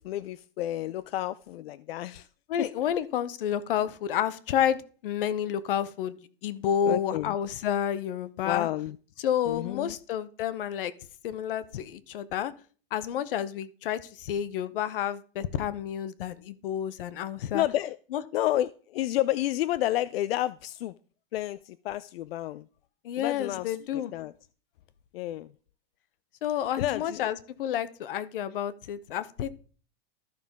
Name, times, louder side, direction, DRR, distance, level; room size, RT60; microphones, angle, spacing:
voice 1, 0.0-2.3 6.8-7.4 8.4-9.0 9.5-9.9 17.5-18.0 18.3-20.9 21.3-22.7 23.2-24.3 25.1-25.5 26.8-27.3, left 14 dB, 85° left, 16 dB, 0.5 m, -30 dB
voice 2, 2.5-6.2 6.4-8.7 9.2-10.9 11.2-12.5 12.9-17.6 18.1-18.2 23.0-24.1 26.4-29.5, left 9 dB, 65° left, 16 dB, 0.8 m, -30 dB
13.5 x 5.6 x 3.6 m, 0.41 s
supercardioid pair, 170°, 29 cm